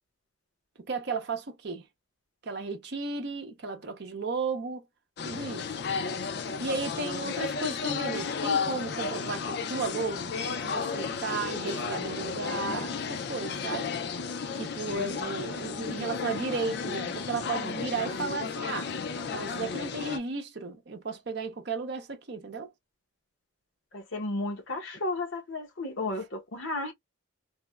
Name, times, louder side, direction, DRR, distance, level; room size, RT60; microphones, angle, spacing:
voice 1, 0.8-1.9 2.4-4.8 5.2-5.8 6.6-13.9 14.5-18.9 19.3-22.7, right 4 dB, 55° right, 0.6 m, -34 dB
sound 1, 5.2-20.2, left 5 dB, 50° left, 0.4 m, -33 dB
voice 2, 23.9-26.9, left 2 dB, 70° left, 0.8 m, -33 dB
3.3 x 2.0 x 2.2 m
head